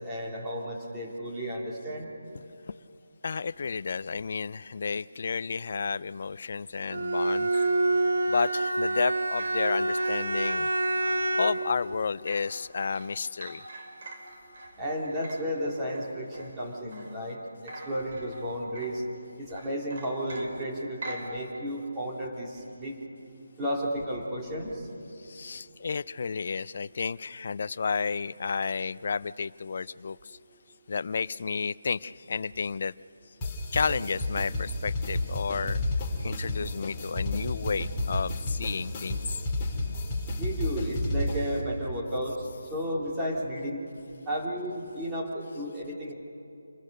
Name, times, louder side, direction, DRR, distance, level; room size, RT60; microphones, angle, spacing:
voice 1, 0.0-2.1 14.8-19.0 19.4-23.0 23.6-24.8 40.4-43.8 44.3-46.1, equal, 10° right, -4 dB, 2.8 m, -33 dB
voice 2, 3.2-7.5 8.3-10.7 11.4-13.6 25.2-30.2 30.9-32.9 33.7-35.8 36.2-39.4, left 5 dB, 45° left, 18 dB, 0.4 m, -31 dB
Bowed string instrument, 6.9-11.7, right 2 dB, 70° right, 1.7 m, -27 dB
sound 1, 7.2-17.4 17.6-19.1 19.5-21.3, right 1 dB, 45° right, 3.5 m, -45 dB
sound 2, 33.4-41.6, left 1 dB, 15° left, 2.9 m, -31 dB
27.5 x 21.0 x 6.6 m, 2.6 s
figure-of-eight pair, 170°, 0 cm